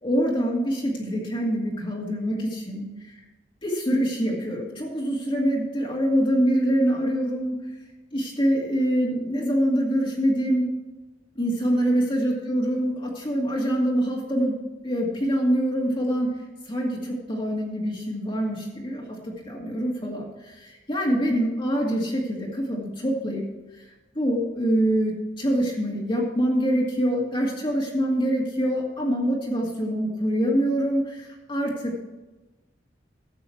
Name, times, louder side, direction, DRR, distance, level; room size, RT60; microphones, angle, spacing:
voice 1, 0.0-3.2 3.6-7.6 8.1-10.7 11.4-14.5 14.8-16.3 16.7-23.4 23.7-23.8 24.2-32.1, equal, 30° left, -3 dB, 2.2 m, -25 dB
13.0 x 8.3 x 4.6 m, 1.1 s
head